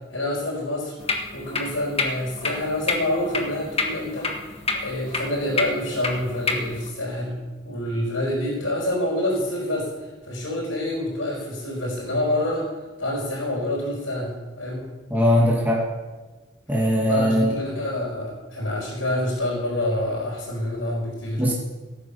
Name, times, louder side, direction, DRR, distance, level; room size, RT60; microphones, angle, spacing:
voice 1, 0.1-0.9 1.3-4.3 4.7-7.3 7.6-12.7 13.0-14.9 17.1-21.5, left 1 dB, 80° left, -6 dB, 4.9 m, -27 dB
sound 1, 1.0-6.9, left 3 dB, 30° left, 1.6 m, -29 dB
voice 2, 15.1-15.8 16.7-17.5 21.4-21.5, equal, 10° right, -4 dB, 2.2 m, -20 dB
17.5 x 9.7 x 7.0 m, 1.2 s
head